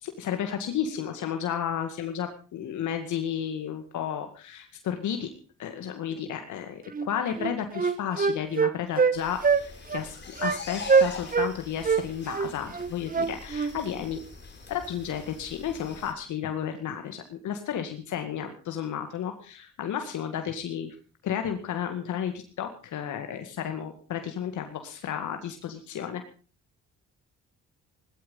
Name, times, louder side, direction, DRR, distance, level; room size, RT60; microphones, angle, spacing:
voice 1, 0.0-5.3 5.6-14.2 14.7-20.9 21.2-26.2, left 9 dB, 75° left, 6 dB, 2.1 m, -32 dB
Wind instrument woodwind instrument, 6.9-7.1 7.4-9.2 9.4-9.6 9.9-10.1 10.4-10.6 10.9-11.5 11.8-13.7, right 5 dB, 30° right, 1.2 m, -23 dB
sound 1, 9.1-16.1, left 4 dB, 35° left, 3.9 m, -43 dB
17.5 x 12.5 x 5.5 m, 0.38 s
cardioid pair, 90°, 30 cm